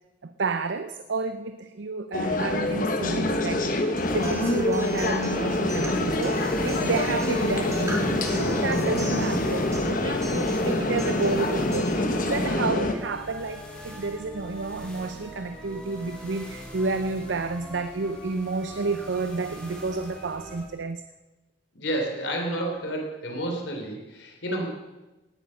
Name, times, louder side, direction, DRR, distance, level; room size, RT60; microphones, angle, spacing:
voice 1, 0.2-3.7 4.1-11.9 12.2-21.0, right 3 dB, 80° right, 9 dB, 0.6 m, -30 dB
sound 1, 2.1-12.9, left 2 dB, 50° left, 1.4 m, -26 dB
Acoustic guitar, 4.0-12.0, right 1 dB, 15° right, 2.9 m, -37 dB
sound 2, 6.3-20.6, equal, 5° left, 3.5 m, -42 dB
voice 2, 21.7-24.7, right 1 dB, 85° left, 1 dB, 3.6 m, -31 dB
17.5 x 9.2 x 6.5 m, 1.1 s
head